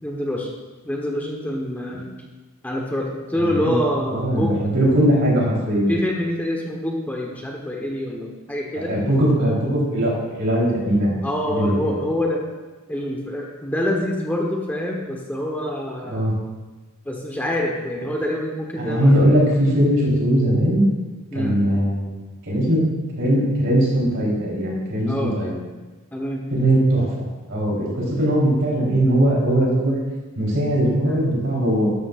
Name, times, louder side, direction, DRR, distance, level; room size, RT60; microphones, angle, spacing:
voice 1, 0.0-0.5 0.8-2.2 2.6-4.5 5.9-8.9 11.2-12.4 12.9-16.2 17.0-19.2 21.3-21.6 25.1-25.3 26.1-26.4 31.0-31.2, left 1 dB, 10° left, -1 dB, 1.2 m, -26 dB
voice 2, 3.4-3.8 4.1-6.0 8.8-12.0 16.1-16.3 18.8-20.9 21.3-22.2 22.4-22.8 23.2-25.6 26.5-27.1 27.5-30.0 30.4-31.9, right 1 dB, 60° right, -4 dB, 3.9 m, -20 dB
13.0 x 12.0 x 2.5 m, 1.2 s
head